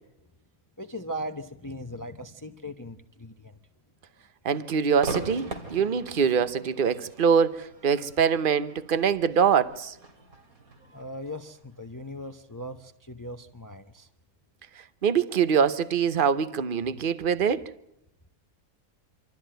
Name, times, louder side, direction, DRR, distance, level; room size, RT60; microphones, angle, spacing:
voice 1, 0.8-3.6 10.9-14.1, equal, 15° left, 0.8 m, -39 dB
voice 2, 4.4-9.9 15.0-17.6, right 7 dB, 40° right, 1.0 m, -24 dB
Crowd / Fireworks, 5.0-12.3, right 4 dB, 75° right, 3.0 m, -41 dB
26.5 x 13.5 x 9.0 m
omnidirectional pair, 1.5 m